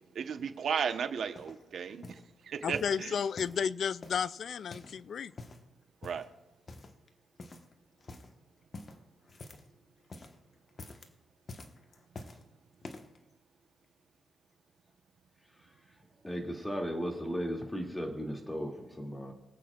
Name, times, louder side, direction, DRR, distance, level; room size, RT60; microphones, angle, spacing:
voice 1, 0.1-2.1 2.5-3.2 6.0-6.3, right 7 dB, 65° right, 8 dB, 1.0 m, -34 dB
sound 1, 0.9-1.6 2.0-2.3 2.7-3.6 4.0-5.0 5.3-5.7 6.0-6.3 6.7-7.1 7.4-7.7 8.0-8.3 8.7-9.7 10.0-10.4 10.7-11.1 11.5-12.4 12.8-13.2 13.8-13.9, left 2 dB, 40° left, 1.3 m, -48 dB
voice 2, 2.6-5.3, left 7 dB, 60° left, 19 dB, 0.3 m, -33 dB
voice 3, 16.2-19.3, equal, 10° left, 1 dB, 2.4 m, -36 dB
24.5 x 8.5 x 2.4 m, 1.1 s
cardioid pair, 90°, 0 cm